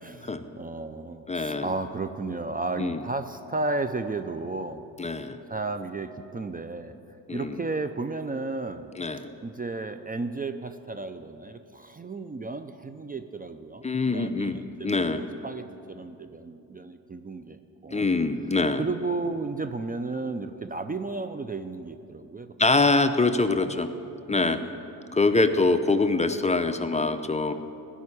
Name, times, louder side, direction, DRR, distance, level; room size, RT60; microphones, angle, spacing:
voice 1, 0.0-4.8 5.5-6.9 7.3-8.9 9.4-18.0 18.8-22.9 24.3-24.9 25.3-25.5, right 3 dB, 20° right, 9 dB, 0.6 m, -34 dB
voice 2, 1.3-1.7 2.8-3.0 5.0-5.4 7.3-7.6 9.0-9.3 13.8-14.6 14.8-15.2 17.9-18.8 22.6-23.9 24.3-24.6 25.1-27.5, left 3 dB, 15° left, 8 dB, 0.7 m, -24 dB
16.5 x 5.7 x 9.8 m, 2.8 s
cardioid pair, 75°, 41 cm